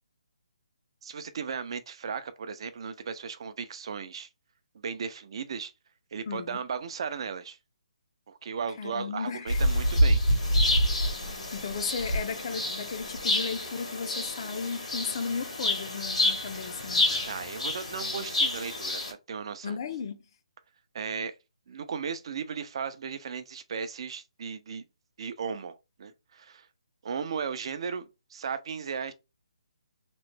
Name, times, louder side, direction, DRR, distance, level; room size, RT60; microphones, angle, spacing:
voice 1, 1.0-4.3 4.7-5.7 6.1-7.6 8.3-10.2 17.3-19.0 19.3-19.8 20.9-21.3 21.7-24.8 25.2-26.7 27.0-29.1, right 6 dB, 50° right, 0.4 m, -36 dB
voice 2, 6.3-6.6 8.8-9.6 11.5-17.1 19.6-20.3, left 5 dB, 40° left, 0.5 m, -35 dB
sound 1, 9.5-19.1, left 1 dB, 80° left, 1.4 m, -28 dB
3.0 x 2.1 x 3.2 m
hypercardioid pair, 155°, 4 cm